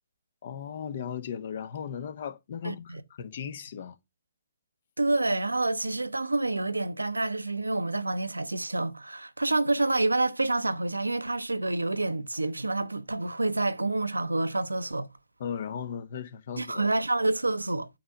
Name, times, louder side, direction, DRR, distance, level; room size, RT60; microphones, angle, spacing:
voice 1, 0.4-4.0 15.4-16.9, left 7 dB, 50° left, 1.2 m, -37 dB
voice 2, 2.6-3.0 5.0-15.1 16.6-17.9, right 2 dB, 90° right, 0.7 m, -28 dB
8.6 x 3.4 x 5.3 m
figure-of-eight pair, 130°, 0 cm